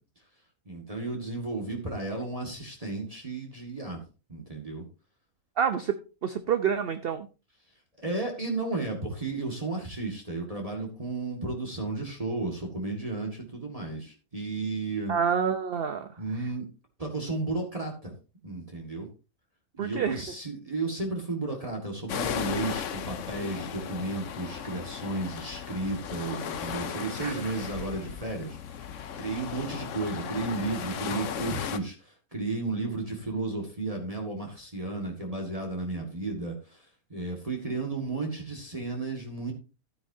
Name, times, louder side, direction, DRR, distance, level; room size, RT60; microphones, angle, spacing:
voice 1, 0.7-4.0 4.3-4.9 8.0-15.2 16.2-16.7 17.0-18.1 18.4-19.1 19.7-39.5, right 3 dB, 25° right, 1 dB, 1.9 m, -33 dB
voice 2, 5.6-7.3 15.1-16.2 19.8-20.2 27.2-27.3, right 7 dB, 55° right, 9 dB, 0.8 m, -28 dB
sound 1, 22.1-31.8, left 8 dB, 65° left, 1.1 m, -36 dB
13.0 x 9.3 x 2.7 m, 0.32 s
omnidirectional pair, 1.5 m